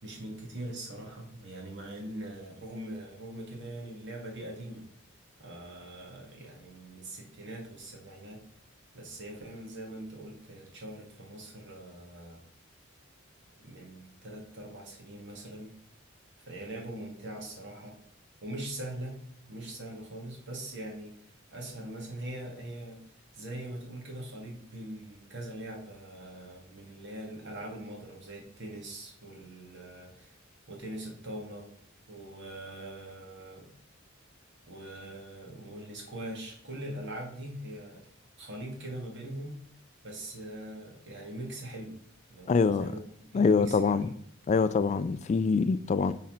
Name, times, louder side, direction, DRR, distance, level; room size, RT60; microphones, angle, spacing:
voice 1, 0.0-4.9 5.4-8.4 8.9-12.4 13.6-15.8 16.5-18.0 18.4-21.1 21.5-30.3 30.7-31.7 32.1-33.7 34.7-38.0 38.4-39.6 40.0-42.0 42.3-44.2, right 1 dB, 60° right, 2.1 m, -42 dB
voice 2, 42.5-42.9 43.3-44.1 44.5-46.1, left 5 dB, 35° left, 0.3 m, -25 dB
8.6 x 4.2 x 3.9 m
head